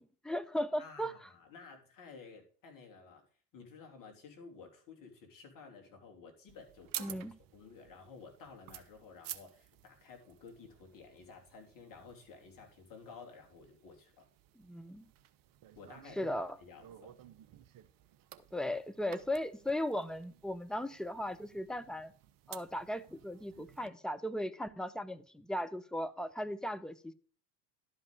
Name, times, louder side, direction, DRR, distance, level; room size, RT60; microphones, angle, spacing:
voice 1, 0.0-1.1 7.0-7.4 14.6-15.1 16.2-16.6 18.5-22.1 22.5-27.1, left 1 dB, ahead, 0.5 m, -37 dB
voice 2, 0.8-3.2 3.5-7.3 7.5-14.3 15.7-17.1, left 4 dB, 40° left, 3.3 m, -53 dB
sound 1, 6.5-23.9, right 12 dB, 45° right, 0.9 m, -52 dB
11.5 x 5.7 x 5.3 m
hypercardioid pair, 75°, 48 cm